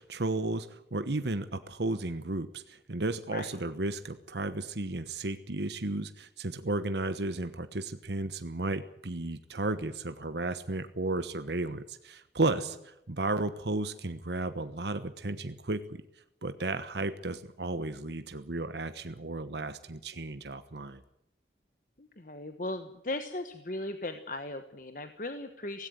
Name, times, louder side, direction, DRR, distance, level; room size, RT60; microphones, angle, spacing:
voice 1, 0.0-16.0 16.4-21.0, right 2 dB, 75° right, 11 dB, 1.2 m, -34 dB
voice 2, 22.0-25.9, left 2 dB, 50° left, 8 dB, 1.3 m, -37 dB
18.0 x 17.0 x 9.4 m, 0.81 s
head